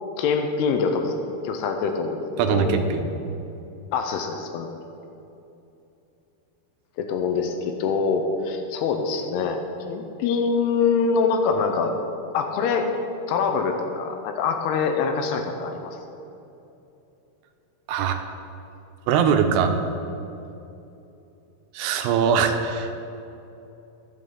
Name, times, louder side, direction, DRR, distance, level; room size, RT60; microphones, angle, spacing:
voice 1, 0.2-1.1 1.4-2.2 2.5-2.8 3.9-4.8 7.0-9.6 9.9-12.0 12.3-12.9 13.3-16.0, left 5 dB, 85° left, 5 dB, 2.6 m, -24 dB
voice 2, 2.4-3.1 17.9-18.2 19.1-19.8 21.7-22.9, right 7 dB, 85° right, 6 dB, 2.8 m, -21 dB
12.5 x 7.6 x 3.8 m, 2.8 s
omnidirectional pair, 4.8 m